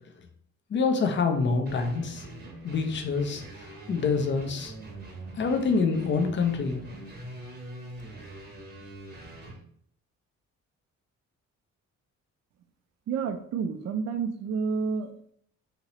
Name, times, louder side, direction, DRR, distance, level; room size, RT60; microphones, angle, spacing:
voice 1, 0.7-2.2 2.6-4.7 5.4-6.8, left 4 dB, 40° left, 5 dB, 0.6 m, -26 dB
sound 1, 1.7-9.6, right 2 dB, 35° right, 0.9 m, -43 dB
voice 2, 13.1-15.1, right 5 dB, 60° right, 8 dB, 0.5 m, -29 dB
2.9 x 2.7 x 3.0 m, 0.64 s
cardioid pair, 90°, 30 cm